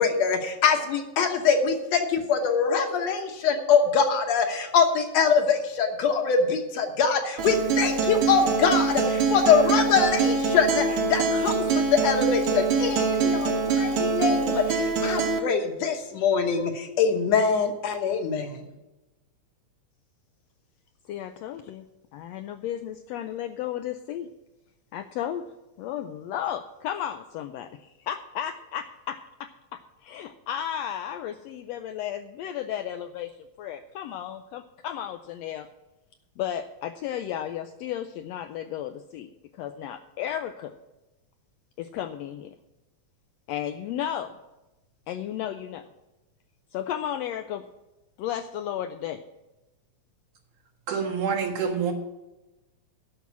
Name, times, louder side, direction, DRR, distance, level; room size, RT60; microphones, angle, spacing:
voice 1, 0.0-18.6, left 6 dB, 65° left, 4 dB, 2.2 m, -23 dB
Acoustic guitar, 7.4-15.4, right 4 dB, 70° right, 2.5 m, -24 dB
voice 2, 21.1-21.8 22.1-24.3 24.9-25.4 25.8-33.3 33.6-35.7 36.4-39.3 39.6-40.7 41.8-42.5 43.5-44.3 45.1-45.8 46.7-47.6 48.2-49.2, left 10 dB, 85° left, 8 dB, 1.5 m, -34 dB
voice 3, 50.9-51.9, right 6 dB, 85° right, 3 dB, 3.0 m, -27 dB
11.5 x 6.1 x 8.4 m, 1.0 s
omnidirectional pair, 3.4 m